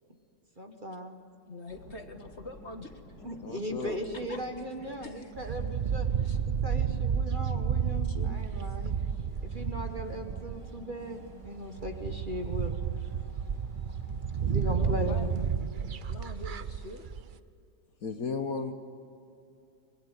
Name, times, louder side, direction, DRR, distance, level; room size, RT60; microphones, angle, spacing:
voice 1, 0.6-1.2 3.2-6.1 6.5-8.9 9.5-12.8 14.4-15.3 15.6-15.7, equal, 30° right, 5 dB, 1.7 m, -38 dB
voice 2, 1.5-2.9 4.3-4.4 5.0-5.5 6.2-6.4 14.8-15.3 16.1-17.1, left 2 dB, 40° left, 6 dB, 1.7 m, -44 dB
sound 1, 1.7-15.3, left 1 dB, 75° left, 5.4 m, -50 dB
voice 3, 3.4-4.0 8.1-8.4 18.0-18.7, left 4 dB, 55° left, 7 dB, 1.5 m, -35 dB
sound 2, 5.4-10.9 11.4-11.5 11.8-17.3, right 7 dB, 75° right, 0.4 m, -31 dB
25.0 x 21.0 x 9.5 m, 2.6 s
omnidirectional pair, 1.9 m